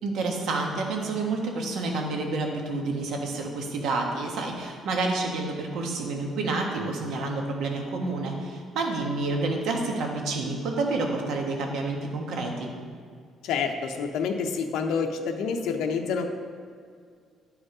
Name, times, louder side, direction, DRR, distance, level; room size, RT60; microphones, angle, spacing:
voice 1, 0.0-12.7, right 3 dB, 70° right, 1 dB, 1.4 m, -29 dB
voice 2, 13.4-16.3, left 5 dB, 90° left, 4 dB, 0.7 m, -28 dB
11.0 x 5.0 x 4.9 m, 2.1 s
cardioid pair, 160°, 0 cm